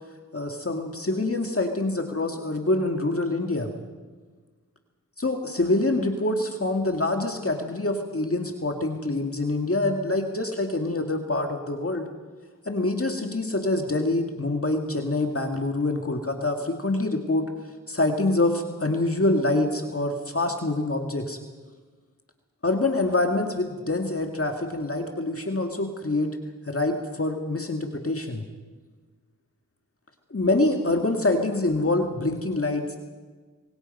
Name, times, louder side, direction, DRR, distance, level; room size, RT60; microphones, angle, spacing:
voice 1, 0.3-3.7 5.2-12.1 12.7-17.5 17.9-21.4 22.6-26.3 26.7-28.4 30.3-33.0, left 2 dB, 40° left, 3 dB, 2.0 m, -25 dB
25.5 x 22.5 x 5.4 m, 1.4 s
wide cardioid pair, 55°, 33 cm